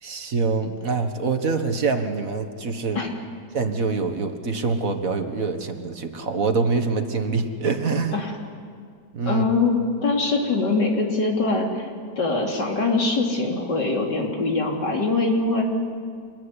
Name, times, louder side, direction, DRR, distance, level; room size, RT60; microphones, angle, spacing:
voice 1, 0.0-3.0 3.5-8.2 9.1-9.5, right 4 dB, 55° right, 6 dB, 1.9 m, -25 dB
voice 2, 9.3-11.9 12.2-15.6, left 3 dB, 90° left, 0 dB, 3.9 m, -23 dB
25.5 x 21.5 x 9.9 m, 2.1 s
omnidirectional pair, 1.8 m